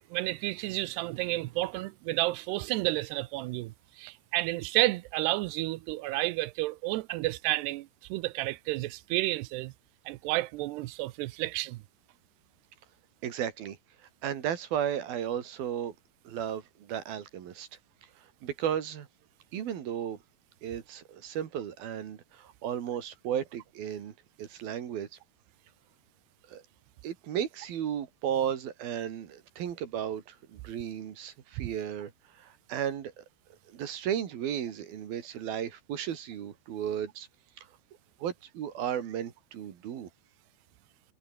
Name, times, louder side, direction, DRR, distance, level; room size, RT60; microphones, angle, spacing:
voice 1, 0.1-9.7 10.1-11.8 31.6-31.7, right 19 dB, 85° right, 2.8 m, -31 dB
voice 2, 13.2-13.8 14.2-16.0 16.3-17.7 18.4-19.1 19.5-20.2 20.6-25.2 26.5-26.6 27.0-33.2 33.7-37.3 38.2-40.1, right 9 dB, 65° right, 3.8 m, -34 dB
omnidirectional pair, 4.8 m